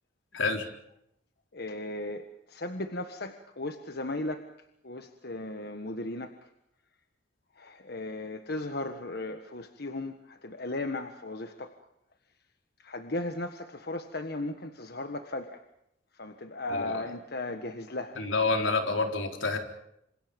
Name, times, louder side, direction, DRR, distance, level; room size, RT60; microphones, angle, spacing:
voice 1, 1.5-4.5 4.8-6.5 7.6-11.8 12.8-15.6 16.1-18.2, left 2 dB, 55° left, 7 dB, 1.6 m, -36 dB
voice 2, 18.2-19.6, left 3 dB, 85° left, 4 dB, 4.2 m, -28 dB
27.5 x 27.0 x 5.3 m, 0.78 s
head